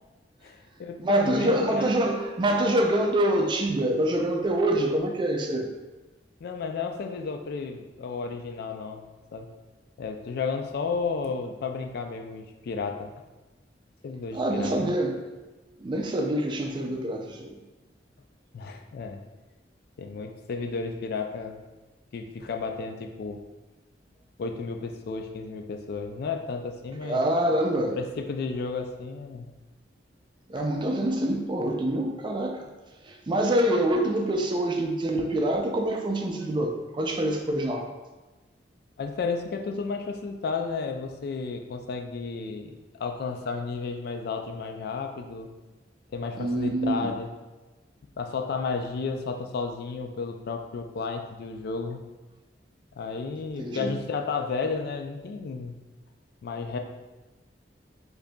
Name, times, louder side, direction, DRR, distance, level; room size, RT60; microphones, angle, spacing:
voice 1, 0.4-1.9 6.4-9.0 9.3-9.5 10.0-13.1 14.0-14.7 18.5-19.2 20.0-21.6 22.1-23.4 24.4-27.2 27.9-29.5 30.6-30.7 39.0-45.5 46.1-47.3 48.2-52.0 53.0-55.7 56.4-56.8, left 4 dB, 60° left, 5 dB, 0.3 m, -32 dB
voice 2, 1.0-5.7 14.3-15.2 15.8-17.6 27.0-28.0 30.5-32.7 33.0-37.8 46.4-47.1 53.6-54.0, right 1 dB, 25° right, 2 dB, 0.4 m, -26 dB
4.9 x 2.6 x 2.2 m, 1.1 s
head